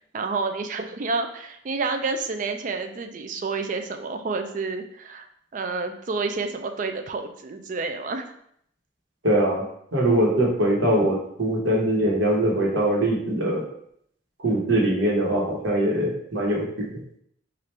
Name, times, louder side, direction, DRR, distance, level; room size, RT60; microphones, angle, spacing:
voice 1, 0.1-5.3 5.5-8.3, right 4 dB, 40° right, 6 dB, 0.3 m, -29 dB
voice 2, 9.2-13.6 14.4-16.9, right 1 dB, 75° right, -3 dB, 1.2 m, -22 dB
4.3 x 2.5 x 3.3 m, 0.69 s
head